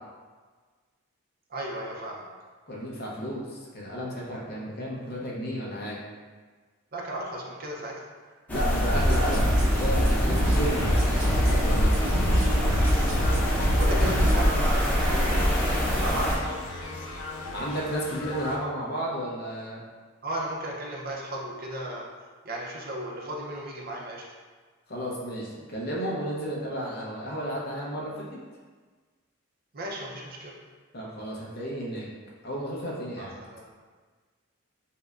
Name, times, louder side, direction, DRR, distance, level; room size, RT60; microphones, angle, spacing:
voice 1, 1.5-2.3 6.9-8.0 12.6-12.8 13.7-16.5 20.2-22.0 22.4-24.2 29.7-30.5 33.2-33.7, right 1 dB, 45° right, -2 dB, 0.6 m, -35 dB
voice 2, 2.7-6.0 8.5-11.9 17.5-19.8 24.9-28.4 30.9-32.1 32.4-33.3, equal, 50° left, -4 dB, 0.8 m, -33 dB
sound 1, 8.5-16.3, equal, 10° left, 0.7 m, -25 dB
sound 2, 8.9-14.4, equal, 65° right, 1.0 m, -25 dB
sound 3, 10.6-18.6, left 2 dB, 85° left, 0.5 m, -37 dB
5.5 x 2.2 x 2.5 m, 1.5 s
head